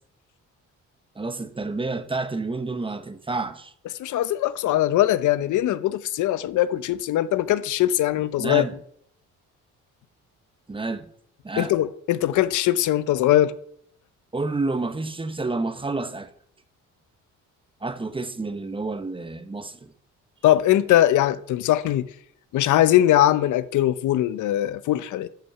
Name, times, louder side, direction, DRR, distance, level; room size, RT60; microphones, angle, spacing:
voice 1, 1.1-3.7 8.4-8.7 10.7-11.1 11.4-11.8 14.3-16.3 17.8-19.9, right 3 dB, 15° right, 0.9 m, -29 dB
voice 2, 4.0-8.6 11.6-13.5 20.4-22.0 22.5-25.3, left 13 dB, 75° left, 0.6 m, -21 dB
10.5 x 5.4 x 6.7 m
cardioid pair, 90°, 30 cm